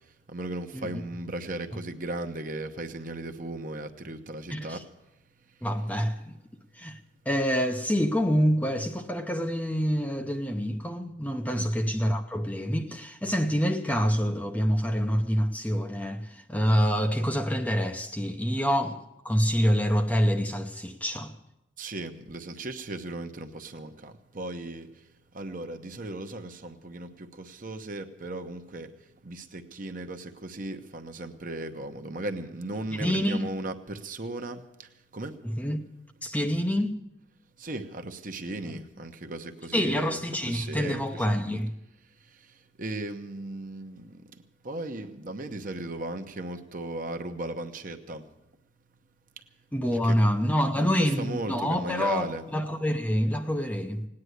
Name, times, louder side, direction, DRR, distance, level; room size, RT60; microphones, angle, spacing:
voice 1, 0.0-5.7 11.5-11.7 21.8-35.4 36.3-36.4 37.6-40.2 40.5-41.3 42.0-48.5 49.4-49.5 50.0-50.2 50.7-52.4, right 2 dB, 45° right, 0.9 m, -37 dB
voice 2, 5.6-6.4 6.7-7.0 7.3-21.3 33.0-33.5 35.5-35.8 36.2-37.0 38.7-38.8 39.7-41.7 49.7-54.1, equal, 10° left, 0.7 m, -26 dB
18.0 x 9.7 x 8.0 m
head